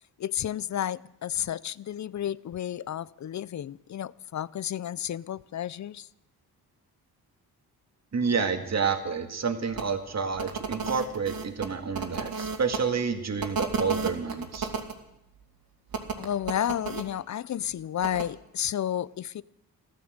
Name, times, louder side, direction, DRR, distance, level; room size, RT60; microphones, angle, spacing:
voice 1, 0.2-6.1 16.2-19.4, left 10 dB, 45° left, 0.5 m, -32 dB
voice 2, 8.1-14.7, right 5 dB, 40° right, 2.0 m, -29 dB
sound 1, 9.7-9.8 10.3-12.8 13.4-14.9 15.9-17.0 18.0-18.2, right 5 dB, 60° right, 2.7 m, -32 dB
14.5 x 12.5 x 8.0 m
cardioid pair, 80°, 40 cm